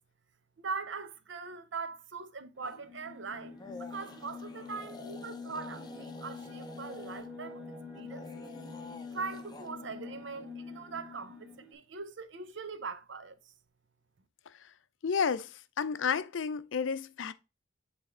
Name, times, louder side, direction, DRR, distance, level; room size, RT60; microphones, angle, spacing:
voice 1, 0.6-7.6 8.0-8.3 9.1-13.4, right 4 dB, 65° right, 0.7 m, -41 dB
sound 1, 2.5-11.7, left 4 dB, 5° right, 1.5 m, -46 dB
sound 2, 2.6-2.8 3.5-7.3 8.0-9.7, left 2 dB, 20° left, 0.6 m, -50 dB
voice 2, 15.0-15.5 15.8-17.3, left 6 dB, 70° left, 0.5 m, -31 dB
7.8 x 3.5 x 3.6 m
head